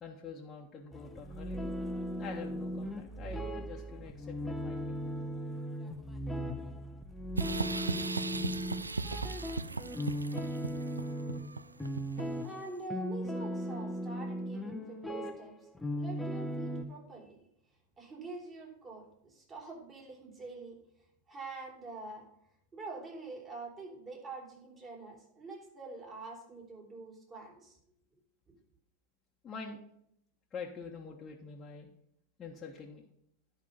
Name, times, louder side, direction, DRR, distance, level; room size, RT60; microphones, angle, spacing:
voice 1, 0.0-1.8 2.1-5.0 7.8-8.6 29.4-29.8 30.5-31.9 32.4-33.0, left 5 dB, 25° left, -3 dB, 1.4 m, -46 dB
sound 1, 0.9-16.8, equal, 5° left, 1.1 m, -37 dB
sound 2, 7.4-12.5, right 3 dB, 85° right, 0.4 m, -37 dB
voice 2, 12.4-15.5 16.0-17.4 18.0-20.8 21.3-22.2 22.7-27.8, right 3 dB, 25° right, -2 dB, 3.9 m, -45 dB
11.0 x 5.3 x 5.5 m, 0.73 s
figure-of-eight pair, 90°, 0 cm